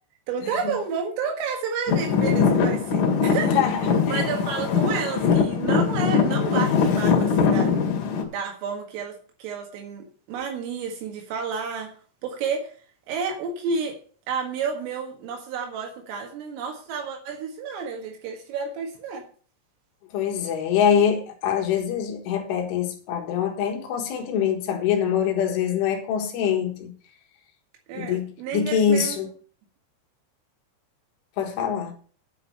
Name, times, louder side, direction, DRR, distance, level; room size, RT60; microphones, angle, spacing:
voice 1, 0.3-7.7 8.3-11.9 12.2-12.7 13.1-13.9 14.3-19.3 27.9-29.2, right 5 dB, 80° right, 4.4 m, -31 dB
Traffic noise roadway noise / Engine, 1.9-8.2, left 6 dB, 55° left, 3.1 m, -22 dB
voice 2, 3.4-4.2 20.1-26.9 28.0-29.3 31.4-31.9, left 8 dB, 75° left, 3.8 m, -24 dB
9.3 x 8.3 x 6.7 m
omnidirectional pair, 5.9 m